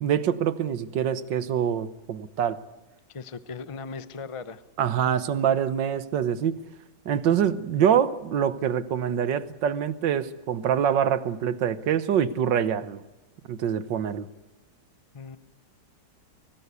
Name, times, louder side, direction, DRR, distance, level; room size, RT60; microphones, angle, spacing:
voice 1, 0.0-2.6 4.8-6.6 7.1-13.0 13.5-14.3, right 9 dB, 85° right, 14 dB, 1.7 m, -25 dB
voice 2, 3.1-4.6 15.1-15.4, left 5 dB, 30° left, 13 dB, 0.6 m, -38 dB
24.5 x 18.5 x 8.3 m, 1.1 s
omnidirectional pair, 1.9 m